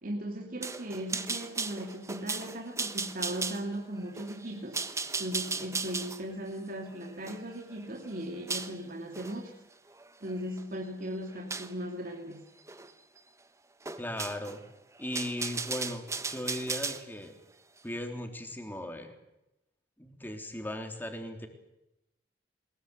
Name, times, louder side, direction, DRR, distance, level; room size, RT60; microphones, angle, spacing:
voice 1, 0.0-4.8 5.2-9.6 10.2-12.5, equal, 55° right, 1 dB, 2.8 m, -38 dB
sound 1, 0.6-8.8 9.1-9.4 9.9-10.6 11.5-11.8 12.7-12.9 13.2-13.3 13.9-14.6 15.0-17.0, right 4 dB, 15° right, 1.2 m, -36 dB
voice 2, 14.0-14.6 15.0-17.3 17.8-19.1 20.0-21.5, left 1 dB, 10° left, 4 dB, 3.5 m, -37 dB
22.5 x 21.5 x 8.2 m, 0.90 s
head